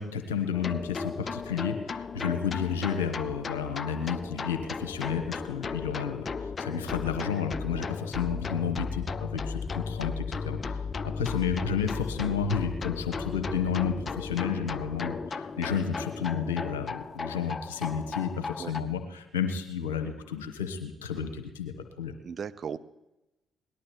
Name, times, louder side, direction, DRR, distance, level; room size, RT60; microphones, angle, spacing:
voice 1, 0.0-22.2, left 7 dB, 85° left, 6 dB, 1.1 m, -31 dB
sound 1, 0.5-18.8, left 5 dB, 40° left, 0.5 m, -35 dB
voice 2, 22.2-22.8, right 6 dB, 50° right, 13 dB, 0.6 m, -37 dB
18.5 x 11.5 x 4.4 m, 0.96 s
figure-of-eight pair, 45°, 0 cm